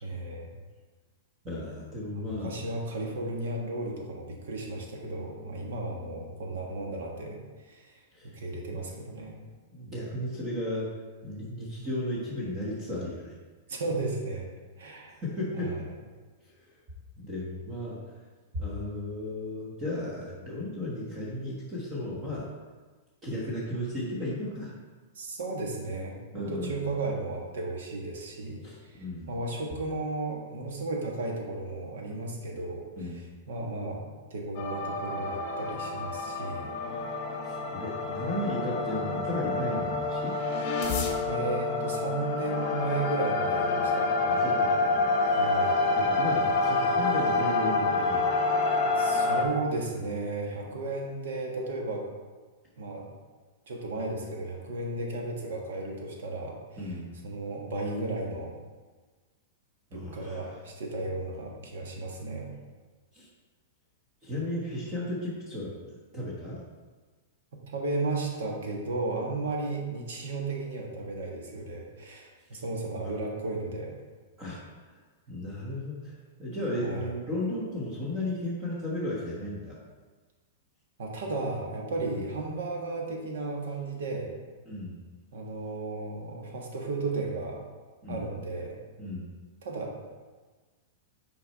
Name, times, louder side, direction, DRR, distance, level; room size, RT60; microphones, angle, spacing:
voice 1, 0.0-0.5 2.2-9.4 13.7-14.5 14.8-15.2 15.5-15.8 25.1-29.0 29.3-34.0 34.3-36.7 41.2-44.1 45.4-45.8 48.9-52.1 52.8-53.1 53.7-57.0 57.2-58.5 59.9-62.5 67.7-73.9 76.7-77.1 81.0-84.3 85.3-87.6 88.1-88.8 89.6-90.0, right 2 dB, 75° right, 0 dB, 1.4 m, -34 dB
voice 2, 1.4-2.5 8.1-8.3 9.7-10.9 11.2-13.4 14.9-15.8 17.2-18.0 18.5-22.5 23.2-24.7 26.3-26.7 28.6-29.3 32.9-33.3 37.4-40.4 44.2-45.5 45.8-48.2 56.8-57.1 59.9-60.4 63.1-63.3 64.2-65.7 66.1-66.6 72.5-72.6 73.0-73.1 74.4-74.6 75.3-79.8 82.1-82.2 84.6-85.0 88.0-88.2 89.0-89.3, left 1 dB, 20° right, -6 dB, 1.2 m, -35 dB
sound 1, 34.6-49.4, left 3 dB, 35° left, 0.9 m, -27 dB
6.1 x 4.6 x 4.2 m, 1.4 s
supercardioid pair, 160°, 0 cm